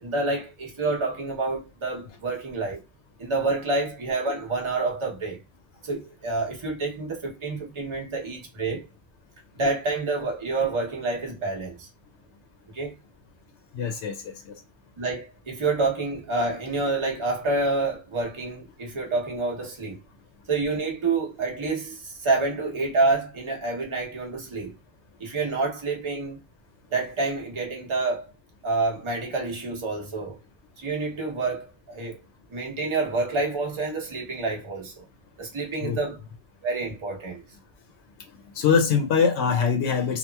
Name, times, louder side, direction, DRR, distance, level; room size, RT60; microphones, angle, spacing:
voice 1, 0.0-2.8 3.2-5.4 5.8-8.8 9.5-11.9 12.7-12.9 15.0-20.0 20.5-24.7 25.2-26.4 26.9-28.3 28.6-30.4 30.8-32.2 32.5-35.0 35.4-36.2 36.6-37.4, right 3 dB, 30° right, 0.7 m, -28 dB
voice 2, 13.7-14.6 35.8-36.0 38.5-40.2, left 6 dB, 85° left, 0.9 m, -23 dB
2.8 x 2.3 x 2.2 m
omnidirectional pair, 1.1 m